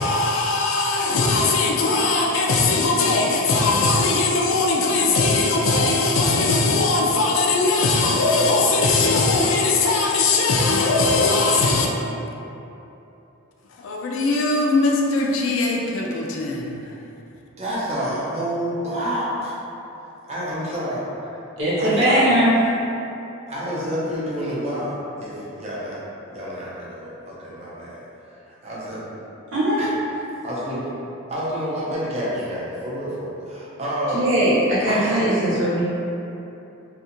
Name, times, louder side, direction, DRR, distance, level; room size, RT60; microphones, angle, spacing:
voice 1, 0.0-11.9 13.8-16.9, left 3 dB, 75° left, -1 dB, 0.4 m, -20 dB
voice 2, 17.6-19.6 20.3-21.0 21.8-22.4 23.5-26.0 26.3-27.7 28.6-29.0 29.8-31.0 31.3-34.2 34.9-35.8, equal, 30° right, -7 dB, 0.5 m, -28 dB
voice 3, 21.6-22.5 29.5-29.9 34.1-35.8, right 1 dB, 65° right, -9 dB, 0.9 m, -19 dB
2.5 x 2.4 x 2.8 m, 2.9 s
head